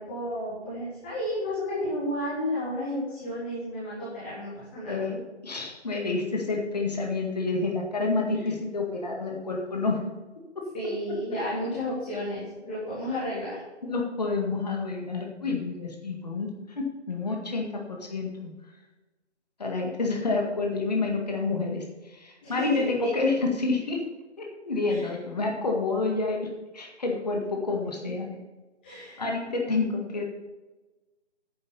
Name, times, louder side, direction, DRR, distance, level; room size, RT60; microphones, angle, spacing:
voice 1, 0.0-5.0 8.3-8.4 10.7-13.6 22.4-23.2 24.9-25.1 28.2-28.3 28.8-29.2, left 1 dB, 10° left, -9 dB, 1.2 m, -32 dB
voice 2, 4.9-10.0 13.8-18.5 19.6-24.0 24.4-26.5 26.7-28.3 29.2-30.2, left 3 dB, 35° left, 0 dB, 1.9 m, -29 dB
9.6 x 7.7 x 5.6 m, 1.2 s
figure-of-eight pair, 155°, 35 cm